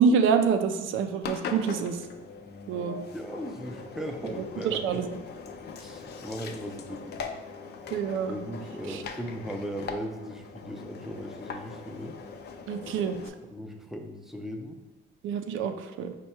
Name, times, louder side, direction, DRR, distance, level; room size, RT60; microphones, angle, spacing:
voice 1, 0.0-2.0 2.7-3.0 4.2-4.3 4.6-5.1 7.9-8.4 8.9-9.0 12.7-13.2 15.2-16.1, right 6 dB, 80° right, 8 dB, 0.4 m, -26 dB
Engine, 1.2-13.3, left 5 dB, 55° left, 0.4 m, -41 dB
voice 2, 3.1-4.8 5.8-7.3 8.3-12.2 13.5-14.8, equal, ahead, 3 dB, 0.5 m, -38 dB
4.5 x 2.2 x 4.2 m, 1.1 s
cardioid pair, 90°, 20 cm